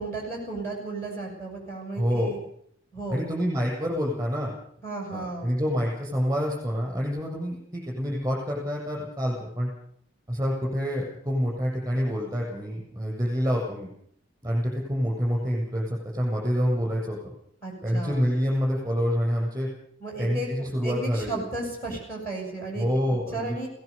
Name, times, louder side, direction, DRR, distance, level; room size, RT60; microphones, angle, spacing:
voice 1, 0.0-2.4 2.9-3.3 4.8-5.5 17.6-18.3 20.0-22.9 23.3-23.7, right 2 dB, 10° left, -1 dB, 7.8 m, -34 dB
voice 2, 1.9-2.4 3.1-4.5 5.1-9.7 10.3-13.9 14.4-17.3 17.8-19.7 20.2-21.4 22.8-23.6, equal, 15° right, -1 dB, 7.2 m, -27 dB
20.5 x 18.5 x 7.0 m, 0.67 s
head